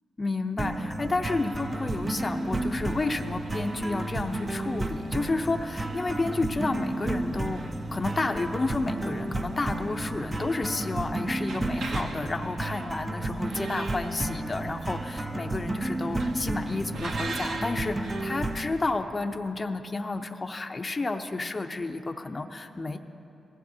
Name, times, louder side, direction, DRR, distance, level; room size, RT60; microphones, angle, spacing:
voice 1, 0.2-23.0, left 3 dB, 30° left, 5 dB, 0.6 m, -31 dB
sound 1, 0.6-18.7, right 2 dB, 20° right, 0.6 m, -32 dB
sound 2, 1.4-18.9, right 3 dB, 75° right, 1.2 m, -45 dB
20.5 x 16.0 x 2.8 m, 2.7 s
cardioid pair, 95°, 0 cm